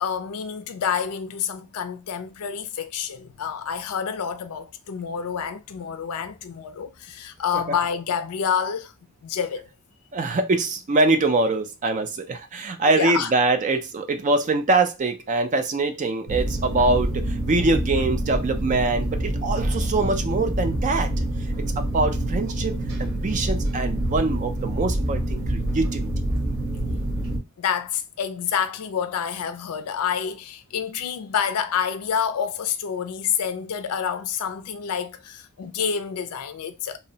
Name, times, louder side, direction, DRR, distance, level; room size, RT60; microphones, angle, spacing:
voice 1, 0.0-8.9 9.2-9.7 12.9-13.3 27.6-37.0, left 7 dB, 80° left, 0.4 m, -28 dB
voice 2, 10.1-21.3 21.6-26.1, right 3 dB, 35° right, 0.4 m, -24 dB
sound 1, 16.3-27.4, right 1 dB, 60° right, 1.0 m, -26 dB
2.8 x 2.0 x 2.7 m
head